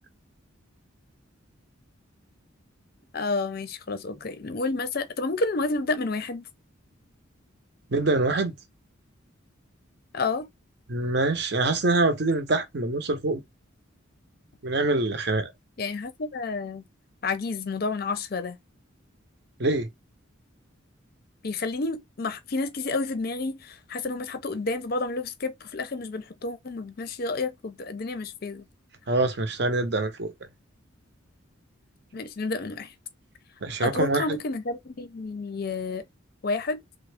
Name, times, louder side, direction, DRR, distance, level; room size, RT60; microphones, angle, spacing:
voice 1, 3.1-6.4 10.1-10.5 15.8-16.8 17.2-18.6 21.4-28.6 32.1-32.9 33.8-36.0 36.4-36.8, left 3 dB, 45° left, 0.5 m, -30 dB
voice 2, 7.9-8.5 10.9-13.4 14.6-15.5 19.6-19.9 29.1-30.3 33.6-34.2, right 2 dB, 55° right, 0.7 m, -24 dB
3.5 x 2.0 x 3.3 m
head